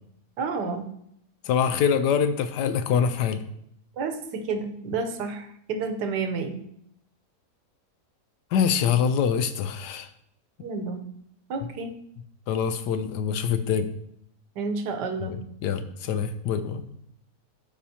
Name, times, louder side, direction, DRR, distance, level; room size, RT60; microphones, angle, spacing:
voice 1, 0.4-0.9 4.0-6.6 10.6-11.0 11.5-11.9 14.6-15.4, right 4 dB, 80° right, 6 dB, 1.4 m, -30 dB
voice 2, 1.4-3.4 8.5-10.1 12.5-13.9 15.2-16.8, left 7 dB, 85° left, 11 dB, 1.2 m, -25 dB
12.0 x 4.9 x 2.8 m, 0.72 s
omnidirectional pair, 1.8 m